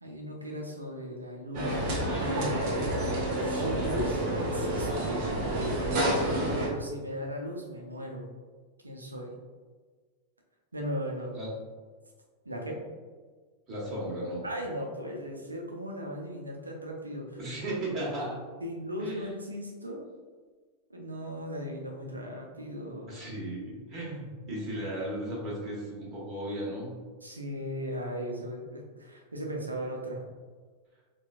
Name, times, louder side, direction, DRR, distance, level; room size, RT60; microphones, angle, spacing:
voice 1, 0.0-2.6 3.4-5.1 6.6-8.2 8.8-9.3 10.7-11.3 12.4-12.8 14.4-17.8 18.6-20.0 20.9-23.2 27.2-30.2, equal, 80° right, 0 dB, 0.6 m, -37 dB
sound 1, 1.5-6.7, right 1 dB, 45° right, 0.8 m, -29 dB
voice 2, 13.7-14.4 17.4-18.4 19.0-19.3 23.1-26.9, right 1 dB, 30° right, -6 dB, 1.3 m, -35 dB
4.4 x 2.3 x 2.4 m, 1.5 s
figure-of-eight pair, 90°, 0 cm